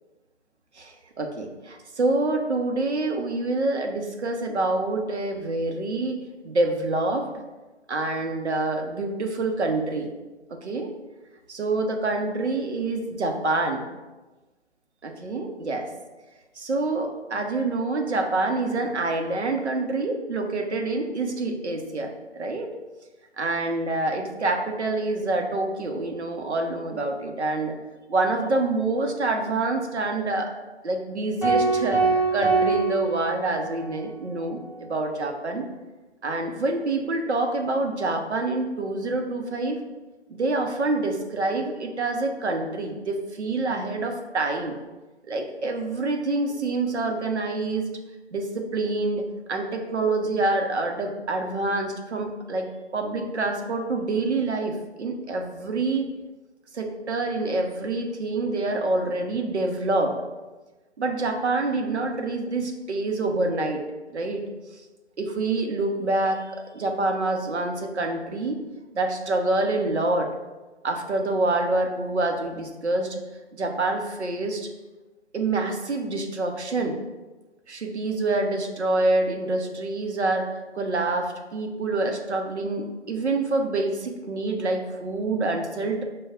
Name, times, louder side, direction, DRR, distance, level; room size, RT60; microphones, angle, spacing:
voice 1, 0.8-7.3 7.9-10.1 10.5-10.9 11.5-13.8 15.0-15.9 16.6-22.7 23.4-27.7 28.1-30.5 30.8-35.7 36.2-39.8 40.3-44.7 45.3-47.9 48.3-52.7 52.9-56.1 56.7-60.2 61.0-63.8 64.1-64.5 65.2-66.5 66.7-68.6 68.9-70.3 70.8-73.2 73.5-74.7 75.3-77.0 77.7-80.5 80.7-86.0, right 2 dB, 75° right, 3 dB, 0.7 m, -26 dB
sound 1, 31.4-33.9, right 4 dB, 15° right, 1.2 m, -23 dB
5.1 x 2.3 x 3.6 m, 1.2 s
figure-of-eight pair, 140°, 34 cm